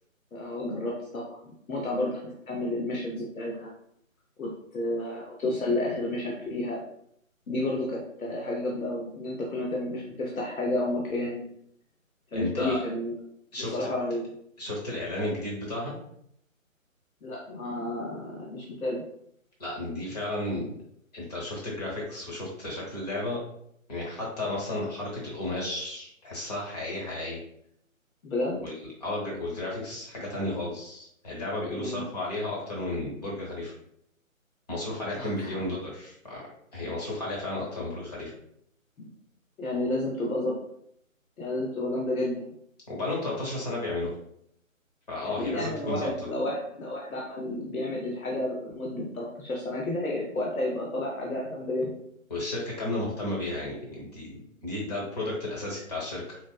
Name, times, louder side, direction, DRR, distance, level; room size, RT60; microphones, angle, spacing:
voice 1, 0.3-3.7 4.4-6.8 7.5-11.4 12.3-13.1 13.6-14.2 17.2-19.0 28.2-28.6 31.8-32.0 35.1-35.6 39.0-39.1 39.6-40.5 41.4-42.4 45.4-51.9, left 1 dB, 85° left, -3 dB, 0.7 m, -31 dB
voice 2, 12.3-12.8 13.5-13.9 14.6-16.0 19.6-20.7 21.1-23.4 23.9-27.4 28.6-33.7 34.7-36.4 36.7-38.3 42.9-44.1 45.1-46.1 52.3-56.4, left 2 dB, 30° left, -3 dB, 0.9 m, -33 dB
4.0 x 2.0 x 2.2 m, 0.72 s
figure-of-eight pair, 150°, 41 cm